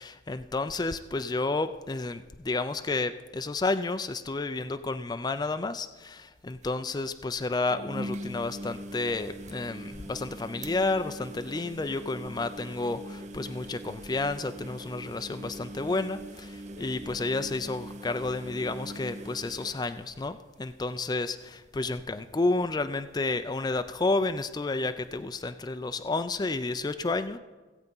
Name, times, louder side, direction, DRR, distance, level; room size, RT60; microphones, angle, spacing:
voice 1, 0.0-27.4, left 3 dB, 20° left, 9 dB, 0.3 m, -31 dB
sound 1, 6.4-6.5 6.6-6.7 7.7-20.7 21.1-21.5 21.8-21.9 23.7-23.8, right 1 dB, 35° right, 0.6 m, -42 dB
16.0 x 7.8 x 5.4 m, 1.3 s
head